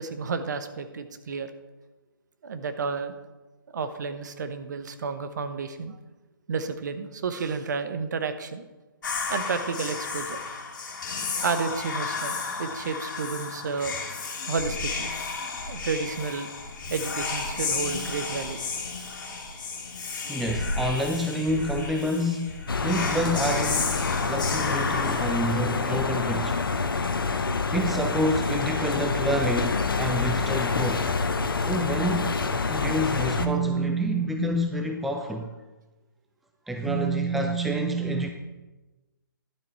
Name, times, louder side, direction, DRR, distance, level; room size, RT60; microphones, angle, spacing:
voice 1, 0.0-1.5 2.4-3.1 3.7-6.0 6.5-8.6 9.3-10.4 11.4-13.9 14.5-15.1 15.7-16.5 16.9-18.6 33.4-34.6 36.8-38.3, right 5 dB, 55° right, 9 dB, 1.0 m, -30 dB
Whispering, 9.0-26.2, left 4 dB, 60° left, 2.4 m, -33 dB
voice 2, 20.3-26.6 27.7-31.1 31.6-32.4 32.7-35.6 36.7-38.3, equal, ahead, 4 dB, 0.4 m, -29 dB
sound 1, 22.7-33.5, left 4 dB, 75° left, 1.0 m, -27 dB
11.5 x 7.9 x 4.5 m, 1.2 s
figure-of-eight pair, 140°, 12 cm